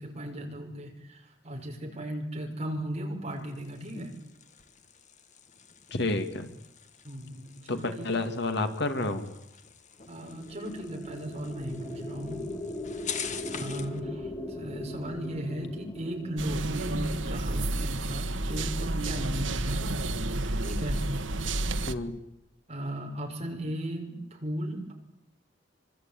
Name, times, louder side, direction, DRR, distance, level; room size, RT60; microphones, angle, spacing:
voice 1, 0.0-4.1 7.0-8.1 10.1-12.5 13.5-19.8 20.6-21.0 22.7-24.9, equal, 35° right, 2 dB, 6.0 m, -36 dB
sound 1, 3.3-14.0, left 7 dB, 40° left, 1.8 m, -45 dB
voice 2, 5.9-6.5 7.7-9.3 21.9-22.2, left 2 dB, 65° left, 7 dB, 2.5 m, -30 dB
sound 2, 10.0-18.5, left 1 dB, 25° left, 2.9 m, -40 dB
sound 3, 16.4-21.9, right 2 dB, 85° right, 1.5 m, -30 dB
25.5 x 25.5 x 9.2 m, 0.85 s
head